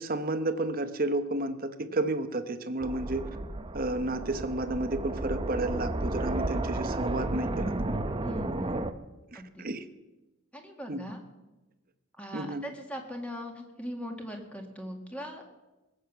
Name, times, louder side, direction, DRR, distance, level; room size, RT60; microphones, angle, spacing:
voice 1, 0.0-3.3 3.7-7.7 9.3-9.8 10.9-11.0 12.3-12.6, right 2 dB, 40° right, 9 dB, 1.0 m, -31 dB
sound 1, 2.8-8.9, right 2 dB, 25° right, 0.7 m, -32 dB
voice 2, 8.2-8.9 9.3-9.7 10.5-11.2 12.2-15.4, equal, 5° left, 2 dB, 1.9 m, -40 dB
20.0 x 7.9 x 6.9 m, 1.1 s
head